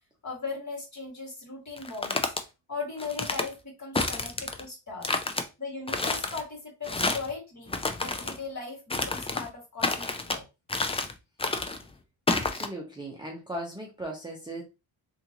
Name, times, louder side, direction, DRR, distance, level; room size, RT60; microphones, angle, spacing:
voice 1, 0.2-2.2 2.7-5.1 5.6-10.4, left 4 dB, 35° left, 2.3 m, -38 dB
sound 1, 1.8-2.4 3.0-3.5 4.0-4.6 5.0-5.4 5.9-6.4 6.8-7.3 7.7-8.4 8.9-9.5 9.8-10.4 10.7-11.1 11.4-11.8 12.3-12.7, left 3 dB, 15° left, 0.3 m, -29 dB
voice 2, 12.3-14.6, right 1 dB, 10° right, 0.9 m, -38 dB
3.6 x 2.7 x 2.9 m
cardioid pair, 95°, 50 cm